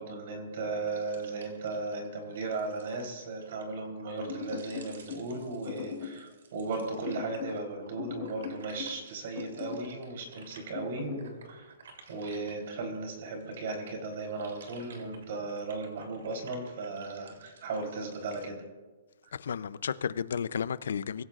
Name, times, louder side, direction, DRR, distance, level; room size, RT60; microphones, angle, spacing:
voice 1, 0.0-11.7 12.1-18.6 19.3-19.4, right 3 dB, 45° right, 3.7 m, -36 dB
sound 1, 0.8-13.0 13.4-18.5, right 4 dB, 80° right, 3.2 m, -55 dB
sound 2, 4.3-5.3 5.7-6.2 7.0-7.6 8.0-9.0 9.3-9.9 10.7-11.3, left 8 dB, 30° left, 3.8 m, -39 dB
voice 2, 19.3-21.2, left 7 dB, 75° left, 0.6 m, -33 dB
24.5 x 15.0 x 2.5 m
hypercardioid pair, 175°, 0 cm